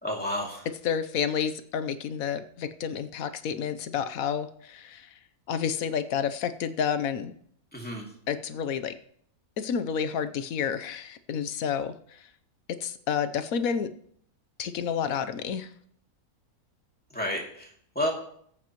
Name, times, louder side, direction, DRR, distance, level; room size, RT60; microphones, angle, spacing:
voice 1, 0.0-0.7 7.7-8.1 17.1-18.1, left 1 dB, 5° left, -2 dB, 2.4 m, -31 dB
voice 2, 0.8-5.1 5.5-7.3 8.3-8.9 9.6-11.9 12.7-13.9 14.6-15.7, left 7 dB, 70° left, 11 dB, 1.1 m, -30 dB
19.0 x 8.3 x 3.0 m, 0.65 s
omnidirectional pair, 1.6 m